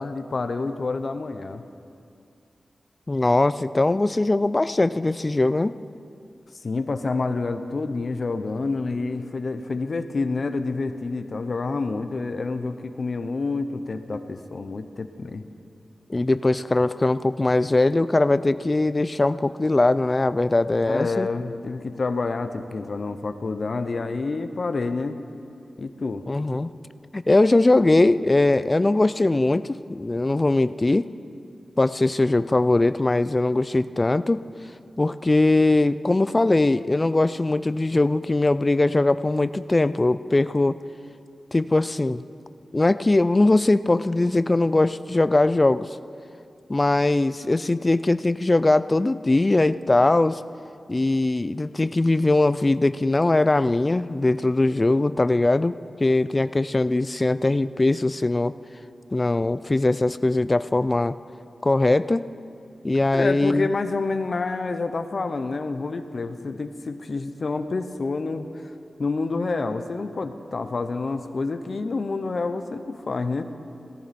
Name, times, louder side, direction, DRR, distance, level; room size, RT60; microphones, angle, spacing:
voice 1, 0.0-1.6 6.6-15.4 20.9-25.2 25.8-26.3 63.1-68.7 69.0-73.4, left 3 dB, 55° left, 9 dB, 0.7 m, -28 dB
voice 2, 3.1-5.8 16.1-21.3 26.3-26.7 27.1-31.1 31.8-34.4 35.0-40.7 41.5-42.2 42.7-45.9 46.7-50.4 50.9-55.7 56.0-58.5 59.1-61.2 61.6-62.2 62.8-63.7, left 2 dB, 25° left, 15 dB, 0.3 m, -21 dB
17.5 x 14.0 x 4.2 m, 2.5 s
wide cardioid pair, 95°, 0 cm